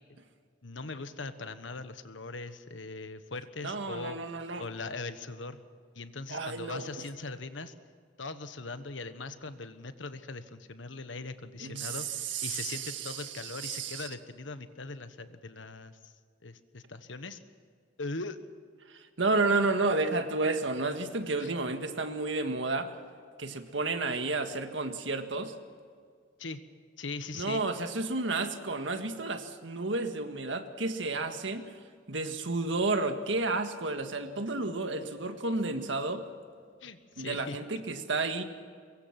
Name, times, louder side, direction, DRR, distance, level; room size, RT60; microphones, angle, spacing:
voice 1, 0.6-4.2 4.6-5.6 5.9-7.7 8.2-16.1 16.4-17.4 18.0-18.4 21.4-21.5 26.4-26.6 27.0-27.6 36.8-37.6, left 3 dB, 85° left, 11 dB, 1.4 m, -40 dB
voice 2, 3.6-4.6 6.3-6.9 11.6-14.1 18.9-22.9 23.4-25.5 27.3-31.7 32.1-36.2 37.2-38.4, right 3 dB, 80° right, 7 dB, 1.8 m, -31 dB
23.5 x 22.5 x 6.0 m, 2.1 s
head